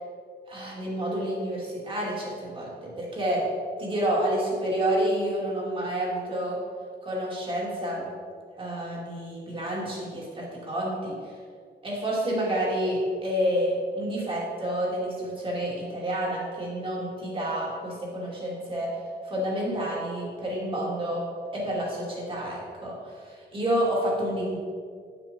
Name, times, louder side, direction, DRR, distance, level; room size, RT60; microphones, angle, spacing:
voice 1, 0.5-3.4 3.8-6.6 7.0-8.1 8.6-11.1 11.8-18.9 19.2-21.2 21.5-22.9 23.2-24.6, right 1 dB, 30° right, -5 dB, 2.5 m, -29 dB
9.7 x 6.1 x 5.4 m, 2.1 s
wide cardioid pair, 175°, 19 cm